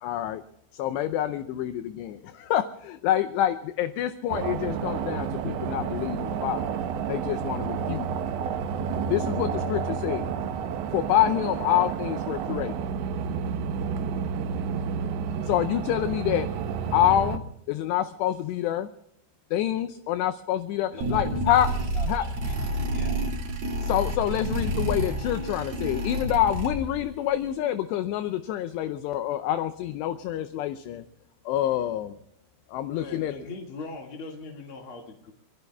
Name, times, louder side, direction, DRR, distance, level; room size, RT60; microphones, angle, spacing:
voice 1, 0.0-0.4 0.7-6.6 7.1-8.1 9.1-10.3 10.9-12.8 15.5-16.5 16.9-17.4 17.7-18.9 19.5-21.7 22.1-22.3 23.8-31.0 31.5-32.1 32.7-33.3, left 12 dB, 80° left, 9 dB, 2.7 m, -27 dB
sound 1, 4.3-17.4, right 7 dB, 80° right, 3.2 m, -30 dB
voice 2, 20.9-23.2, equal, 20° left, 4 dB, 5.8 m, -44 dB
sound 2, 21.0-27.1, right 1 dB, 60° right, 4.1 m, -29 dB
voice 3, 32.9-35.3, left 3 dB, 45° left, 0 dB, 1.9 m, -40 dB
26.5 x 22.5 x 2.3 m, 0.77 s
omnidirectional pair, 5.3 m